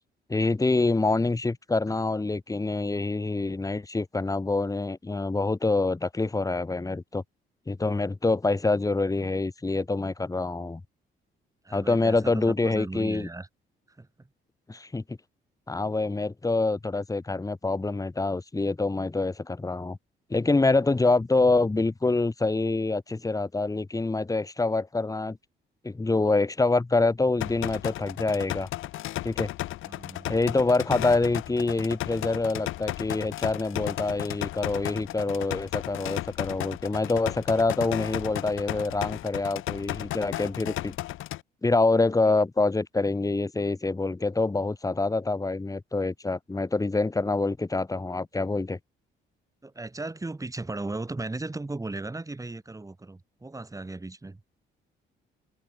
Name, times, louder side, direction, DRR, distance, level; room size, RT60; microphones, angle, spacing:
voice 1, 0.3-7.2 7.7-10.8 11.7-13.3 14.7-15.2 15.7-20.0 20.3-25.4 25.8-28.7 29.2-29.5 30.3-41.0 41.6-48.8, left 3 dB, 15° left, 1.9 m, -26 dB
voice 2, 11.6-13.5 14.0-14.1 29.9-30.3 49.6-54.4, right 2 dB, 15° right, 3.6 m, -36 dB
sound 1, 27.4-41.4, left 15 dB, 85° left, 1.2 m, -34 dB
cardioid pair, 90°, 20 cm